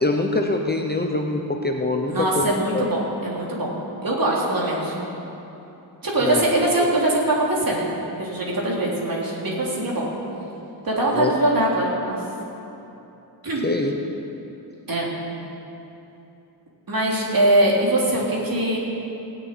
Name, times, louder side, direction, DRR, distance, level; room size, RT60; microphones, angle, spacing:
voice 1, 0.0-2.8 6.2-6.5 11.1-11.3 13.6-13.9, left 2 dB, 20° left, 2 dB, 0.7 m, -24 dB
voice 2, 2.1-3.7 4.0-4.9 6.0-7.9 8.2-10.1 10.8-12.2 13.4-13.7 14.9-15.1 16.9-18.8, right 1 dB, 50° right, -4 dB, 3.4 m, -22 dB
17.0 x 7.2 x 9.1 m, 2.9 s
wide cardioid pair, 155°, 45 cm